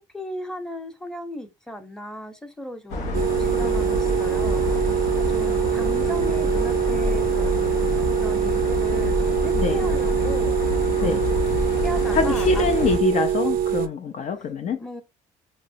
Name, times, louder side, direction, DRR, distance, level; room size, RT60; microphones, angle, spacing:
voice 1, 0.1-11.4 11.8-12.7 14.8-15.0, equal, 5° left, 0.8 m, -37 dB
sound 1, 2.9-13.0, left 3 dB, 85° left, 0.7 m, -27 dB
sound 2, 3.1-13.9, right 9 dB, 65° right, 0.4 m, -24 dB
voice 2, 12.1-14.8, left 5 dB, 50° left, 0.5 m, -24 dB
5.1 x 2.1 x 2.6 m
supercardioid pair, 65°, 16 cm